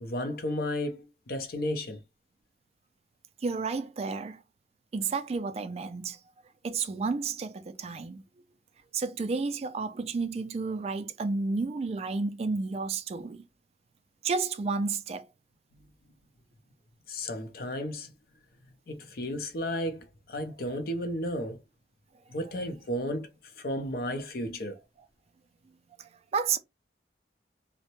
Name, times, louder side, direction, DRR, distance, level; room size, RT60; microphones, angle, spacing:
voice 1, 0.0-2.0 17.1-18.1 18.9-21.6 22.3-23.3 23.5-24.8, left 1 dB, 55° left, 0.5 m, -33 dB
voice 2, 3.4-4.4 4.9-6.2 6.6-8.2 8.9-13.4 14.2-15.3 26.0-26.6, right 4 dB, 35° right, 0.3 m, -31 dB
2.7 x 2.1 x 2.9 m
head